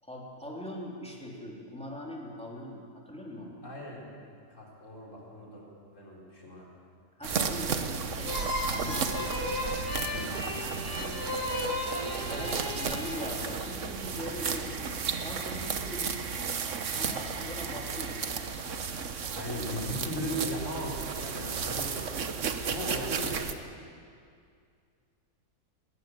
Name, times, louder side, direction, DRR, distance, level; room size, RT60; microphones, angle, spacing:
voice 1, 0.0-3.6 7.2-8.4 8.7-9.1 12.1-14.7 15.2-16.6 16.9-18.6, equal, 5° left, -3 dB, 3.5 m, -41 dB
voice 2, 3.6-4.1 4.5-5.7 5.9-6.7 7.3-7.6 8.8-9.2 9.9-11.2 14.2-14.3 19.3-22.0 22.6-23.5, equal, 55° left, -3 dB, 4.7 m, -38 dB
sound 1, 7.2-23.5, right 6 dB, 55° right, 1.4 m, -34 dB
sound 2, 8.2-13.7, left 1 dB, 35° left, 5.6 m, -35 dB
20.0 x 19.0 x 7.9 m, 2.3 s
omnidirectional pair, 1.6 m